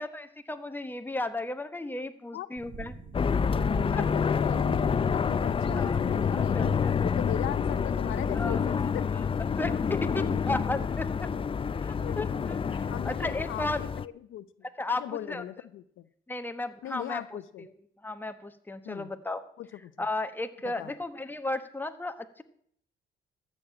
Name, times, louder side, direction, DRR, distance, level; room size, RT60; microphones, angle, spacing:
voice 1, 0.0-3.0 3.9-4.0 5.8-6.0 6.3-6.9 8.3-8.9 9.6-11.3 11.8-13.9 14.8-15.0 15.3-15.4 16.3-17.7 18.0-19.4 20.0-22.4, left 2 dB, 10° left, 8 dB, 1.2 m, -35 dB
sound 1, 2.6-7.6, right 5 dB, 45° right, 1.4 m, -45 dB
sound 2, 3.1-14.1, left 6 dB, 25° left, 0.4 m, -28 dB
voice 2, 3.9-6.7 7.0-9.1 11.4-11.5 12.0-12.3 12.9-14.5 14.9-16.1 16.8-17.7 18.8-19.1 19.6-20.1 20.6-20.9, left 12 dB, 80° left, 15 dB, 0.7 m, -38 dB
13.5 x 6.5 x 8.6 m, 0.65 s
cardioid pair, 90°, 20 cm